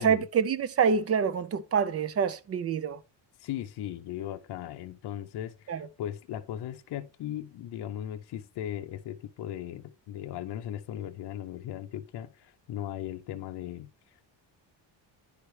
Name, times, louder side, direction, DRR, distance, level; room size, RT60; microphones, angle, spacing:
voice 1, 0.0-3.0 5.7-5.8, right 6 dB, 35° right, 0.4 m, -26 dB
voice 2, 3.4-14.2, left 11 dB, 60° left, 0.6 m, -38 dB
10.0 x 4.8 x 3.1 m
cardioid pair, 165°, 46 cm